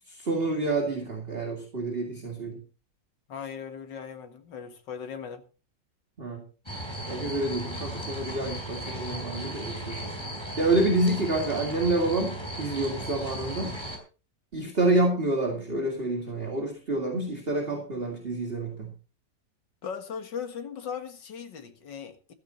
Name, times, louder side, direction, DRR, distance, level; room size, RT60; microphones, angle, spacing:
voice 1, 0.1-2.6 6.2-6.4 7.1-10.0 10.6-13.8 14.5-18.9, right 2 dB, 30° right, 2.3 m, -28 dB
voice 2, 3.3-5.4 19.8-22.3, left 7 dB, 80° left, 2.3 m, -38 dB
sound 1, 6.7-14.0, right 1 dB, 15° left, 4.3 m, -36 dB
14.0 x 13.5 x 4.0 m
omnidirectional pair, 1.9 m